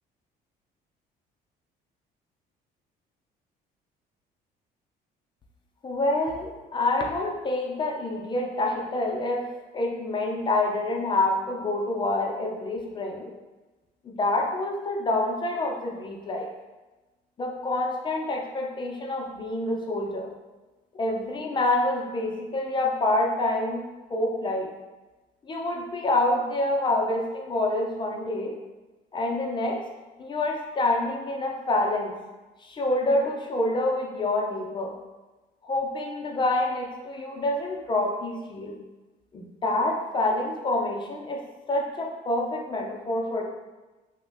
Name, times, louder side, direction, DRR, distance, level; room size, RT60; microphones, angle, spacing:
voice 1, 5.8-9.5 9.7-13.3 14.0-16.5 17.4-20.3 21.0-23.8 24.1-24.7 25.5-28.5 29.1-29.8 30.2-32.1 32.6-34.9 35.6-38.8 39.3-41.4 41.7-43.4, left 2 dB, 30° left, 0 dB, 0.5 m, -27 dB
3.0 x 2.1 x 3.3 m, 1.2 s
cardioid pair, 110°, 17 cm